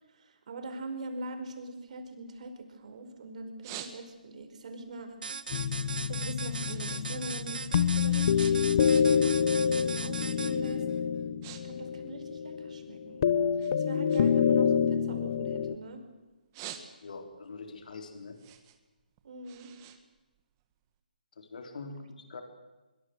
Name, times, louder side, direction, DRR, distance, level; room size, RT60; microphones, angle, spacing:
voice 1, 0.1-5.2 6.0-10.8 11.6-13.3 13.6-16.0 19.2-19.7, right 2 dB, 50° right, 6 dB, 5.1 m, -42 dB
sound 1, 1.9-3.0 3.4-4.4 4.8-7.1 7.3-9.4 9.7-10.0 10.6-10.8 11.1-11.6 11.9-13.1 13.6-15.9 16.3-17.3 17.8-20.9, right 12 dB, 25° right, 2.0 m, -48 dB
sound 2, 5.2-10.8, right 5 dB, 75° right, 1.4 m, -39 dB
sound 3, 5.5-15.7, left 7 dB, 40° left, 1.3 m, -27 dB
voice 2, 17.0-18.4 21.4-22.4, left 4 dB, 60° left, 5 dB, 3.7 m, -43 dB
24.0 x 23.0 x 7.9 m, 1.1 s
hypercardioid pair, 160°, 5 cm